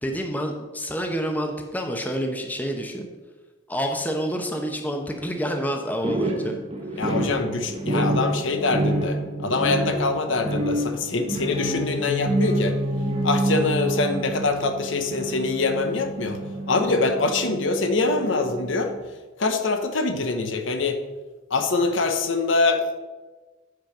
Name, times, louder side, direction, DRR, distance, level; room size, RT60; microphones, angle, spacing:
voice 1, 0.0-3.1 3.7-6.6 6.9-7.0, equal, 10° left, 3 dB, 0.8 m, -28 dB
sound 1, 6.0-19.0, right 1 dB, 30° right, 1.1 m, -29 dB
voice 2, 7.0-12.8 13.2-16.4 16.7-18.9 19.4-21.0 21.5-23.0, left 3 dB, 75° left, 7 dB, 0.9 m, -24 dB
sound 2, 11.4-17.3, left 1 dB, 30° left, 1.9 m, -31 dB
7.8 x 5.2 x 6.0 m, 1.3 s
head